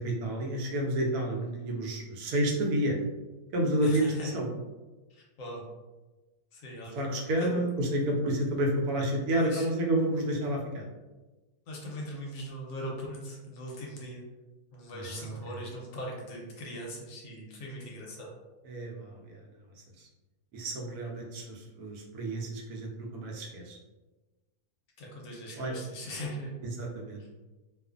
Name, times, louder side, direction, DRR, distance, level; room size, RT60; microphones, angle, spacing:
voice 1, 0.0-3.0 3.5-4.5 6.9-10.9 14.9-15.6 18.6-19.4 20.0-20.1 20.5-23.8 25.5-25.7 26.6-27.2, right 1 dB, 80° right, 0 dB, 1.1 m, -30 dB
voice 2, 3.8-4.3 5.1-5.7 6.5-7.1 7.4-7.5 9.4-9.7 11.7-14.2 14.7-18.3 25.0-26.5 27.2-27.3, equal, 70° left, -2 dB, 0.9 m, -40 dB
2.4 x 2.4 x 2.4 m, 1.2 s
omnidirectional pair, 1.6 m